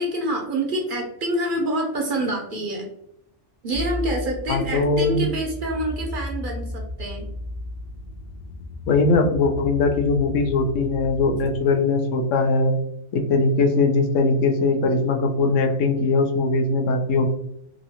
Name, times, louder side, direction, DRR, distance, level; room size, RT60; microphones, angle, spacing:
voice 1, 0.0-2.9 3.6-7.3, right 1 dB, 55° right, 1 dB, 0.6 m, -27 dB
sound 1, 3.7-11.6, left 1 dB, 60° left, 0.4 m, -34 dB
voice 2, 4.5-5.3 8.9-12.7 13.1-17.3, left 3 dB, 85° left, 4 dB, 0.9 m, -20 dB
2.9 x 2.5 x 2.7 m, 0.75 s
omnidirectional pair, 1.3 m